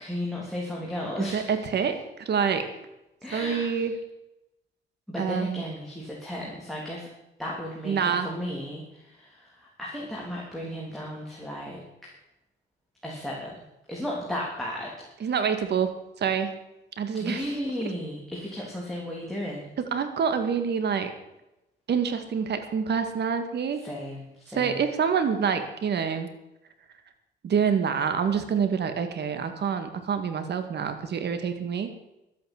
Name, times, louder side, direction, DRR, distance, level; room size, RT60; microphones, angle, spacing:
voice 1, 0.0-2.0 3.2-3.9 5.1-7.1 7.4-12.1 13.0-13.6 13.9-15.3 17.1-19.7 23.8-24.8, left 1 dB, ahead, -4 dB, 3.6 m, -35 dB
voice 2, 1.3-1.9 2.3-2.7 3.3-3.9 5.2-5.6 7.8-8.3 15.2-15.9 16.2-16.5 17.0-17.5 19.8-21.1 21.9-23.8 24.6-26.3 27.4-31.9, right 6 dB, 60° right, 8 dB, 2.0 m, -26 dB
12.5 x 8.9 x 8.2 m, 0.93 s
cardioid pair, 90°, 20 cm